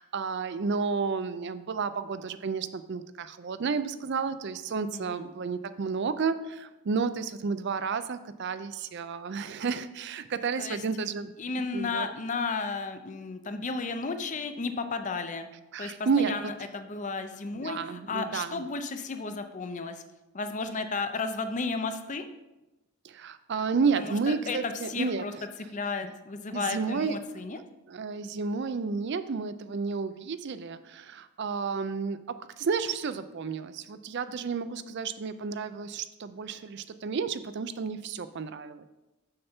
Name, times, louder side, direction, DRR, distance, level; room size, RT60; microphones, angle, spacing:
voice 1, 0.0-11.3 11.7-12.1 15.7-16.3 17.5-18.6 23.0-25.2 26.5-27.2 27.9-38.9, right 5 dB, 50° right, 13 dB, 0.4 m, -31 dB
voice 2, 11.4-15.5 15.8-20.0 20.3-22.3 24.0-25.3 25.7-27.6, left 4 dB, 35° left, 9 dB, 0.5 m, -33 dB
6.8 x 6.5 x 4.4 m, 1.0 s
head